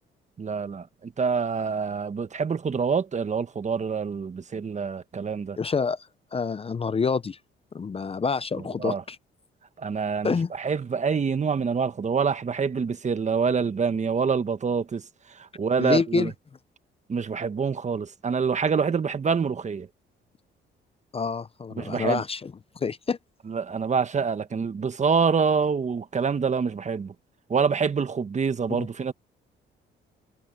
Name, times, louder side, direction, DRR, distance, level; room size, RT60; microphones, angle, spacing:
voice 1, 0.4-5.6 8.8-9.0 9.8-15.0 15.5-16.3 17.1-19.9 21.8-22.2 23.5-27.1 27.5-29.1, right 5 dB, 35° right, 1.4 m, -26 dB
voice 2, 5.6-6.1 6.3-7.4 7.7-9.2 10.2-10.5 15.8-16.3 21.1-22.5 22.8-23.2 28.8-28.9, left 5 dB, 30° left, 0.6 m, -27 dB
cardioid pair, 90°, 20 cm